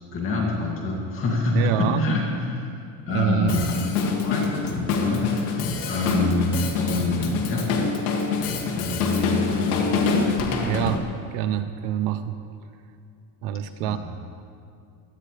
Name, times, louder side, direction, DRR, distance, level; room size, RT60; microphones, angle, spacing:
voice 1, 0.1-2.7 3.1-3.8 4.2-7.7 8.7-10.4 13.8-14.0, left 2 dB, 25° left, -2 dB, 2.4 m, -26 dB
voice 2, 1.5-2.1 3.1-3.6 10.6-11.0 11.3-12.4 13.4-14.0, right 11 dB, 45° right, 10 dB, 0.7 m, -25 dB
Drum kit, 3.5-11.0, left 4 dB, 65° left, 2.3 m, -25 dB
24.0 x 17.5 x 3.4 m, 2.4 s
cardioid pair, 170°, 47 cm